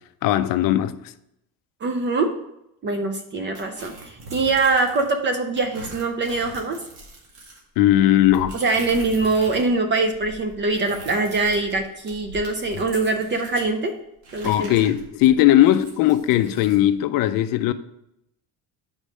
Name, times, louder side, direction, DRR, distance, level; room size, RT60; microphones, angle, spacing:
voice 1, 0.2-1.0 7.8-8.6 14.4-17.7, left 13 dB, 50° left, 0.5 m, -18 dB
voice 2, 1.8-2.3 2.8-6.8 8.6-13.9 14.3-14.8, right 3 dB, 25° right, 0.4 m, -23 dB
sound 1, 3.5-5.2 5.6-9.7 10.0-13.7 14.2-16.8, right 1 dB, 60° right, 2.1 m, -41 dB
5.2 x 5.1 x 6.3 m
cardioid pair, 170°, 43 cm